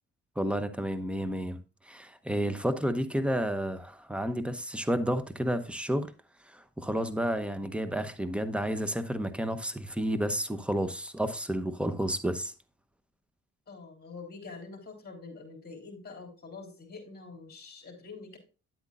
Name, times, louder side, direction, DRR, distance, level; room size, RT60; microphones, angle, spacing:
voice 1, 0.4-1.6 1.8-6.1 6.5-12.5, right 1 dB, 5° right, 0.9 m, -31 dB
voice 2, 13.7-18.4, left 4 dB, 35° left, 3.4 m, -45 dB
9.6 x 8.1 x 2.5 m
cardioid pair, 90°, 30 cm